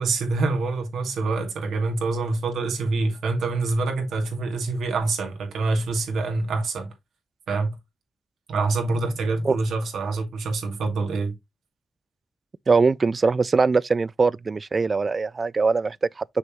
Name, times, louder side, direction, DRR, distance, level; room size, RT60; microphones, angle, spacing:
voice 1, 0.0-6.9 7.5-7.8 8.5-11.3, right 3 dB, 90° right, 2.4 m, -26 dB
voice 2, 12.7-16.2, right 4 dB, 50° right, 0.4 m, -21 dB
6.5 x 5.2 x 3.0 m
supercardioid pair, 45°, 0 cm